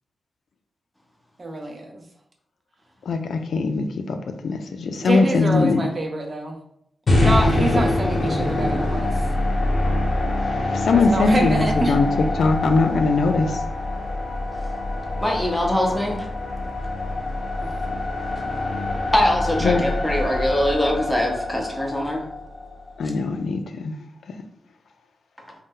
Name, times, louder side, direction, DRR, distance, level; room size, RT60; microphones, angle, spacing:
voice 1, 1.4-2.0 5.0-6.6 7.2-9.2 10.9-12.0 17.6-17.7, right 2 dB, 40° right, 2 dB, 0.6 m, -26 dB
voice 2, 3.1-5.9 7.7-7.8 10.5-13.6 19.6-19.8 23.0-23.9 24.3-24.4, left 4 dB, 80° left, 6 dB, 0.3 m, -21 dB
sound 1, 7.1-23.2, left 2 dB, 60° left, 0.8 m, -25 dB
voice 3, 15.2-16.3 19.1-22.2, left 1 dB, 5° left, 0 dB, 0.7 m, -22 dB
2.6 x 2.1 x 3.6 m, 0.72 s
cardioid pair, 85°, 0 cm